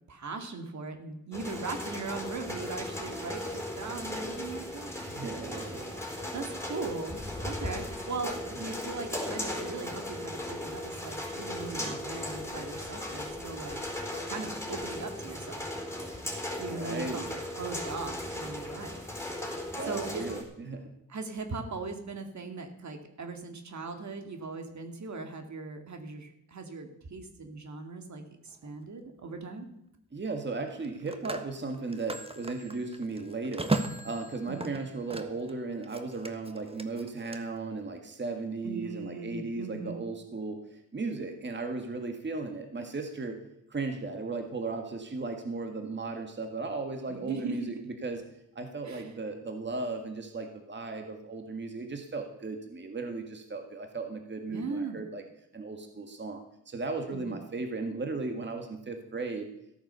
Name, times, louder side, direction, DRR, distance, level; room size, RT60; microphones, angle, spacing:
voice 1, 0.1-4.9 5.2-5.3 6.3-13.8 14.3-15.7 16.6-19.0 19.8-20.2 21.1-29.7 34.5-34.7 38.6-40.0 47.1-47.8 48.9-49.1 54.5-55.0 57.1-57.3, right 4 dB, 60° right, 5 dB, 2.2 m, -39 dB
sound 1, 1.3-20.4, left 1 dB, 10° left, 3.8 m, -37 dB
voice 2, 5.0-5.9 11.8-12.0 16.7-17.3 19.8-20.9 30.1-33.8 34.0-43.4 43.7-48.2 48.6-55.2 55.5-59.5, right 3 dB, 35° right, 5 dB, 1.9 m, -36 dB
Telephone, 28.5-28.7 30.7-35.5 35.8-37.4, right 2 dB, 15° right, 1.4 m, -37 dB
14.5 x 8.7 x 6.9 m, 0.80 s
cardioid pair, 80°, 32 cm